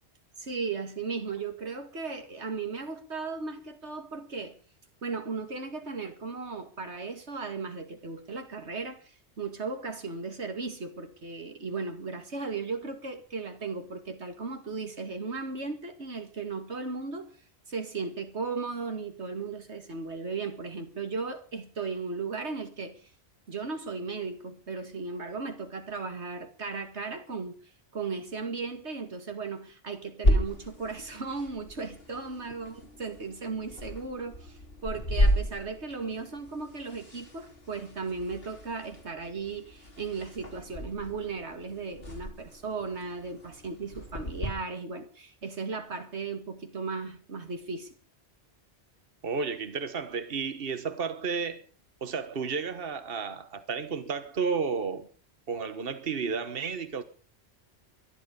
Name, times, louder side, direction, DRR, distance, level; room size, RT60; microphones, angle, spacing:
voice 1, 0.4-4.6 5.0-17.3 17.7-23.0 23.5-27.6 27.9-47.9, right 4 dB, 85° right, 2.5 m, -36 dB
sound 1, 30.2-44.5, equal, 60° left, 3.1 m, -33 dB
voice 2, 49.2-51.6 52.0-55.1 55.5-57.0, right 5 dB, 60° right, 1.5 m, -32 dB
23.5 x 11.5 x 5.3 m
omnidirectional pair, 1.1 m